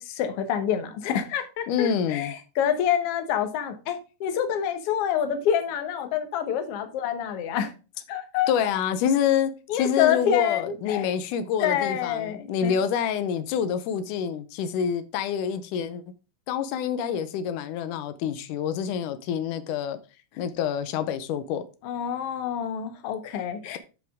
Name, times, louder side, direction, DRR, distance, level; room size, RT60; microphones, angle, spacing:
voice 1, 0.0-7.7 8.1-8.5 9.7-11.1 11.6-12.7 21.8-23.8, left 9 dB, 65° left, 1.6 m, -27 dB
voice 2, 1.7-2.3 8.5-16.0 16.5-20.0 20.4-21.6, left 8 dB, 80° left, 2.2 m, -27 dB
11.5 x 5.0 x 3.6 m
omnidirectional pair, 3.7 m